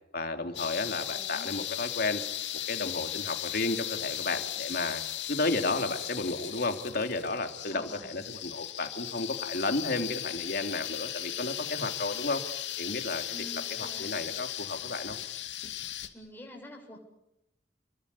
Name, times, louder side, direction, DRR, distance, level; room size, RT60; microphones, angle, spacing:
voice 1, 0.1-2.2 2.7-5.0 5.3-13.2 13.8-15.2, left 2 dB, 60° left, 5 dB, 3.1 m, -32 dB
sound 1, 0.5-16.1, left 12 dB, 90° left, 2.5 m, -37 dB
voice 2, 1.1-1.6 7.7-8.2 13.3-14.1 16.1-17.0, equal, 10° left, 1 dB, 7.4 m, -47 dB
29.0 x 22.5 x 8.5 m, 0.86 s
head